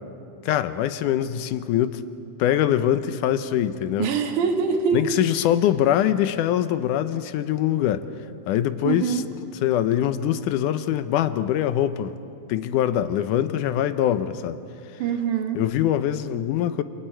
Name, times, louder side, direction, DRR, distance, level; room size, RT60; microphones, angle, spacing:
voice 1, 0.5-2.0 2.4-4.1 4.9-8.1 8.5-9.2 9.6-12.2 12.5-14.6 15.6-16.8, left 11 dB, 80° left, 11 dB, 2.2 m, -23 dB
voice 2, 4.0-5.1 8.8-9.3 15.0-15.6, right 6 dB, 70° right, 5 dB, 2.9 m, -24 dB
29.0 x 27.5 x 4.5 m, 2.7 s
omnidirectional pair, 3.7 m